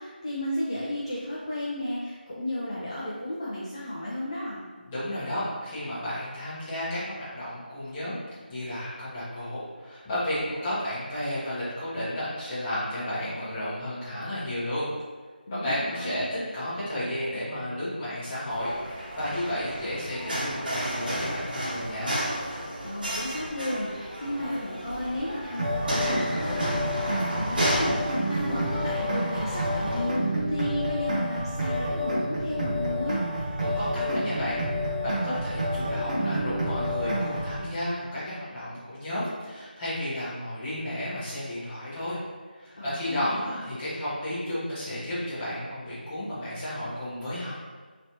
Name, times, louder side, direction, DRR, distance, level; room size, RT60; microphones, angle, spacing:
voice 1, 0.0-4.7 15.5-16.3 22.8-33.2 42.8-43.4, left 1 dB, 35° left, -8 dB, 0.5 m, -33 dB
voice 2, 4.8-8.2 8.5-14.9 15.5-22.2 33.6-42.2 42.5-47.5, left 1 dB, 10° left, -12 dB, 0.8 m, -32 dB
sound 1, 18.5-30.0, equal, 65° right, 1.2 m, -33 dB
sound 2, 25.6-37.6, equal, 50° right, 0.7 m, -29 dB
3.1 x 2.9 x 2.8 m, 1.5 s
figure-of-eight pair, 170°, 5 cm